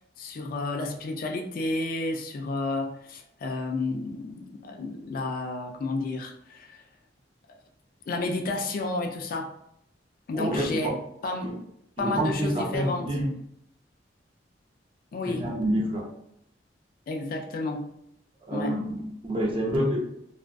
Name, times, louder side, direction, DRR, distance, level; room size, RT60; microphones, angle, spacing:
voice 1, 0.2-6.8 7.5-7.6 8.1-9.5 10.3-10.9 11.2-11.6 12.0-13.1 15.1-15.5 17.1-17.9 18.5-18.7, left 2 dB, 50° left, 3 dB, 0.3 m, -31 dB
voice 2, 10.3-11.0 11.4-11.5 12.0-13.3 15.3-16.1 18.4-20.0, right 1 dB, 30° right, -1 dB, 0.5 m, -28 dB
2.4 x 2.2 x 2.2 m, 0.76 s
head